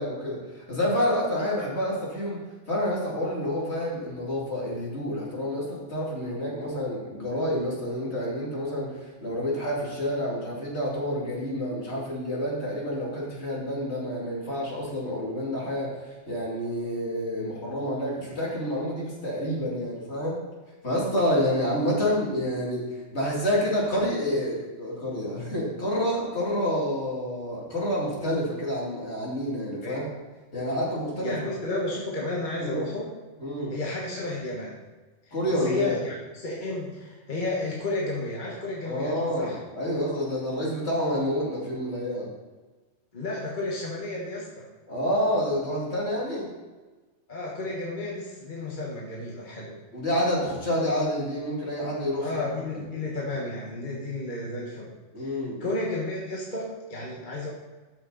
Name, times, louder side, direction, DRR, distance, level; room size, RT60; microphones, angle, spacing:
voice 1, 0.0-15.9 16.3-20.4 20.8-22.8 23.1-30.1 30.5-31.4 32.6-32.9 33.4-33.8 35.3-36.0 38.9-42.3 44.9-46.5 49.9-52.4 55.1-55.6, equal, 60° left, -4 dB, 3.0 m, -28 dB
voice 2, 31.2-33.1 33.7-34.8 35.2-39.6 43.1-44.7 47.3-49.8 52.2-57.5, left 2 dB, 40° left, -3 dB, 1.6 m, -32 dB
13.0 x 6.3 x 4.0 m, 1.3 s
omnidirectional pair, 1.3 m